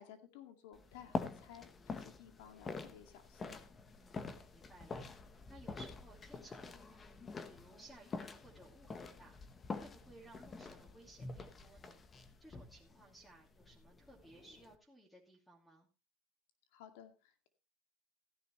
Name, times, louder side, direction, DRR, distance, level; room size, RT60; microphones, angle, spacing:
voice 1, 0.0-3.6 16.7-17.5, left 9 dB, 85° left, 7 dB, 2.2 m, -56 dB
sound 1, 0.7-14.8, left 4 dB, 25° left, 1.1 m, -47 dB
voice 2, 4.5-5.0 5.5-7.0 7.4-9.3 9.8-12.0 12.4-15.9, right 2 dB, 5° left, -1 dB, 2.6 m, -59 dB
15.5 x 10.5 x 3.1 m, 0.29 s
cardioid pair, 140°, 0 cm